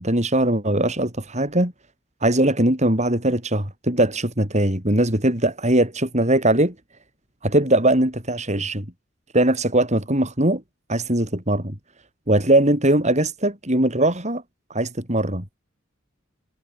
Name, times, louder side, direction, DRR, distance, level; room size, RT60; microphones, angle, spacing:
voice 1, 0.0-1.7 2.2-6.7 7.4-8.9 9.3-10.6 10.9-11.8 12.3-14.4 14.7-15.4, right 1 dB, 35° right, 7.3 m, -20 dB
head